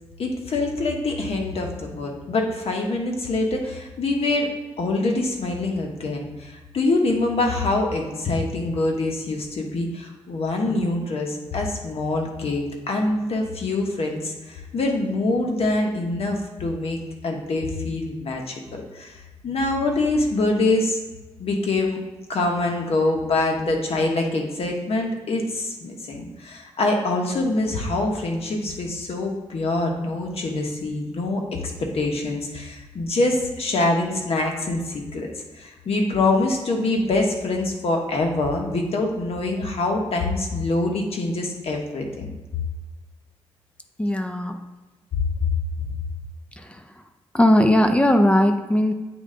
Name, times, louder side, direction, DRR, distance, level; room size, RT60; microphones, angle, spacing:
voice 1, 0.2-4.5 4.8-19.1 19.4-21.0 21.4-22.0 22.3-31.4 31.8-42.3, left 2 dB, 65° left, 1 dB, 1.1 m, -25 dB
voice 2, 44.0-44.6 46.6-46.8 47.3-48.9, left 1 dB, 10° left, 6 dB, 0.5 m, -18 dB
8.3 x 3.2 x 3.8 m, 1.2 s
cardioid pair, 80°, 11 cm